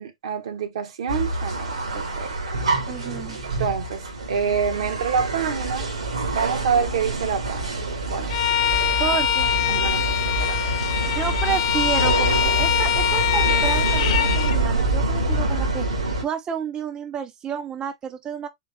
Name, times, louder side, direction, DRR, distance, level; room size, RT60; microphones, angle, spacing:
voice 1, 0.0-2.4 3.4-5.9 6.3-8.3 9.7-10.0 10.4-10.6, right 6 dB, 65° right, 1.1 m, -27 dB
sound 1, 1.1-16.2, right 2 dB, 80° right, 1.8 m, -26 dB
voice 2, 2.9-3.4 9.0-9.5 11.1-15.9 16.2-18.5, right 8 dB, 25° right, 0.5 m, -30 dB
Bowed string instrument, 8.3-14.6, left 11 dB, 50° left, 0.7 m, -23 dB
4.4 x 3.3 x 3.1 m
figure-of-eight pair, 100°, 3 cm